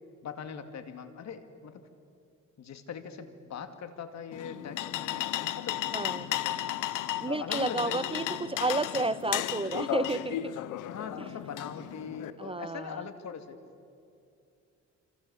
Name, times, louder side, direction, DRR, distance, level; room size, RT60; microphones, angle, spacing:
voice 1, 0.2-1.8 2.6-6.6 7.3-8.2 8.9-9.1 10.8-13.6, left 7 dB, 65° left, 8 dB, 2.4 m, -41 dB
sound 1, 4.3-12.3, left 13 dB, 85° left, 0.9 m, -34 dB
voice 2, 5.9-6.3 7.2-10.6 12.4-13.1, right 3 dB, 20° right, 16 dB, 0.6 m, -31 dB
27.0 x 26.5 x 7.1 m, 2.6 s
cardioid pair, 90°, 30 cm